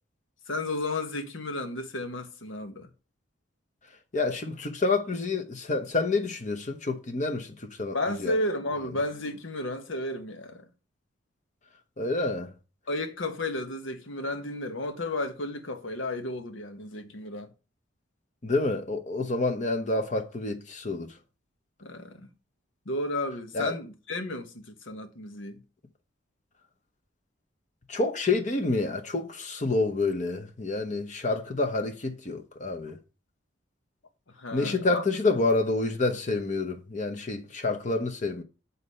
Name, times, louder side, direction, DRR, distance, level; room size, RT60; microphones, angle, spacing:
voice 1, 0.5-2.9 7.9-10.7 12.9-17.5 21.8-22.3 22.8-25.6 34.4-35.0, left 1 dB, 85° left, 1.3 m, -33 dB
voice 2, 4.1-8.4 12.0-12.5 18.4-21.2 23.5-23.7 27.9-33.0 34.5-38.4, left 3 dB, 40° left, 0.8 m, -28 dB
8.2 x 4.0 x 5.5 m
head